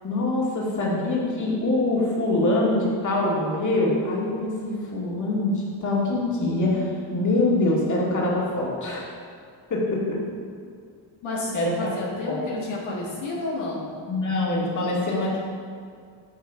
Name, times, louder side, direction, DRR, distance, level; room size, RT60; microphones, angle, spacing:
voice 1, 0.0-9.0 9.7-10.2 11.5-11.9 12.3-12.4 14.1-15.4, left 2 dB, 40° left, -5 dB, 2.0 m, -24 dB
voice 2, 11.2-13.9, left 2 dB, 80° left, -5 dB, 1.7 m, -31 dB
9.3 x 6.5 x 3.6 m, 2.2 s
cardioid pair, 105°, 47 cm